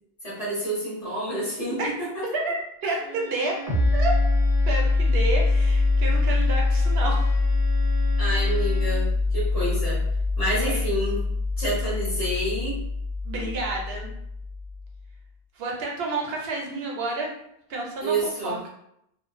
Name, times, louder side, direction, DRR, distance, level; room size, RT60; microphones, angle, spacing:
voice 1, 0.2-2.2 2.8-3.0 8.2-10.0 10.4-11.2 11.6-12.8 18.0-18.6, right 1 dB, 40° left, -8 dB, 1.0 m, -28 dB
voice 2, 2.3-3.6 3.9-4.2 4.7-7.3 10.6-10.8 13.2-14.1 15.6-17.3 17.7-18.1 18.4-18.7, right 2 dB, 75° right, -1 dB, 0.8 m, -30 dB
Bowed string instrument, 3.0-9.0, right 2 dB, 90° left, 1.0 m, -40 dB
sound 1, 3.7-15.0, left 3 dB, 40° right, 0.7 m, -23 dB
2.4 x 2.1 x 2.4 m, 0.75 s
omnidirectional pair, 1.1 m